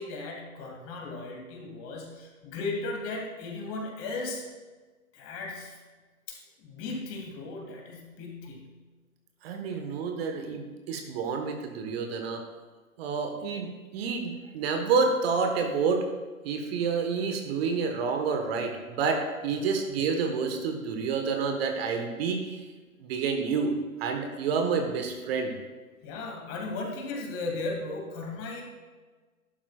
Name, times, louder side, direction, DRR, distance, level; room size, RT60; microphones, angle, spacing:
voice 1, 0.0-4.4 5.1-5.8 6.3-8.8 19.5-19.7 26.0-28.6, left 3 dB, 30° left, 0 dB, 2.6 m, -36 dB
voice 2, 9.4-12.4 13.0-16.1 16.4-22.6 23.0-23.7 24.0-25.5, right 5 dB, 45° right, 4 dB, 1.4 m, -29 dB
13.0 x 11.5 x 2.4 m, 1.4 s
figure-of-eight pair, 110°, 42 cm